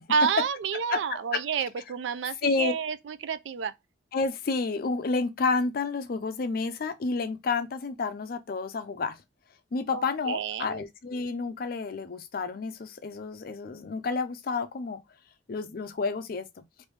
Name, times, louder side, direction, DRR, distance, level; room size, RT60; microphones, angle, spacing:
voice 1, 0.1-3.7 9.9-10.8, right 6 dB, 75° right, 0.3 m, -29 dB
voice 2, 2.4-2.8 4.1-9.2 9.7-15.0 15.5-16.6, left 4 dB, 55° left, 0.4 m, -30 dB
3.2 x 2.6 x 3.2 m
head